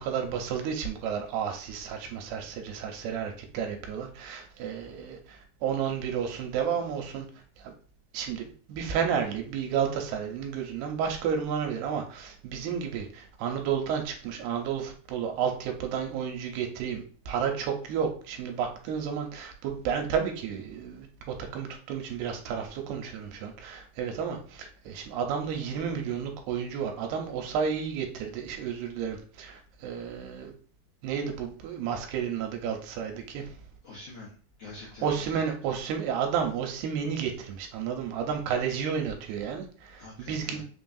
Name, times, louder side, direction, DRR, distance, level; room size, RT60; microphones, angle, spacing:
voice 1, 0.0-7.3 7.6-7.7 8.1-30.5 31.0-33.6 35.0-40.6, right 7 dB, 85° right, 3 dB, 2.6 m, -32 dB
voice 2, 33.8-35.4 40.0-40.6, left 3 dB, 75° left, -8 dB, 1.5 m, -46 dB
5.8 x 2.6 x 2.3 m, 0.42 s
omnidirectional pair, 4.5 m